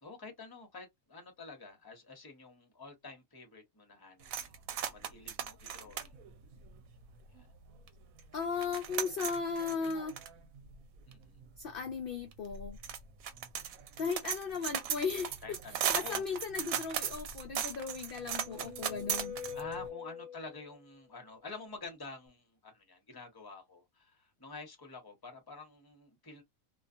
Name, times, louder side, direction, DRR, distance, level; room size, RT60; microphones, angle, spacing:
voice 1, 0.0-4.5 4.8-6.2 7.3-7.5 11.1-11.4 14.2-14.3 15.4-16.2 19.5-26.4, left 3 dB, 20° left, 0.8 m, -48 dB
sound 1, 4.2-7.4 7.9-8.0 8.2-19.9, right 9 dB, 80° right, 1.0 m, -38 dB
voice 2, 8.3-10.1 11.6-12.8 14.0-15.4 15.9-19.4, left 5 dB, 60° left, 0.6 m, -36 dB
sound 2, 18.0-20.8, left 7 dB, 65° right, 1.1 m, -45 dB
2.4 x 2.3 x 2.5 m
omnidirectional pair, 1.4 m